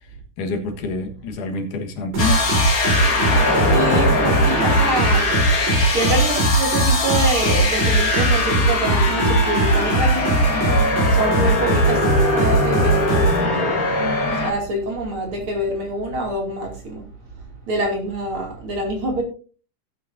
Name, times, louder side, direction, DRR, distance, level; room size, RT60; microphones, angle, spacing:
voice 1, 0.4-2.4, left 3 dB, 75° left, 3.0 m, -27 dB
sound 1, 2.1-13.4, right 2 dB, 85° right, 6.0 m, -20 dB
sound 2, 2.2-14.5, left 2 dB, 30° left, 2.2 m, -21 dB
voice 2, 3.5-5.3 5.9-10.5 11.1-12.1 12.3-17.1 17.7-19.2, right 2 dB, 45° right, 3.3 m, -26 dB
17.0 x 8.8 x 2.6 m
omnidirectional pair, 3.6 m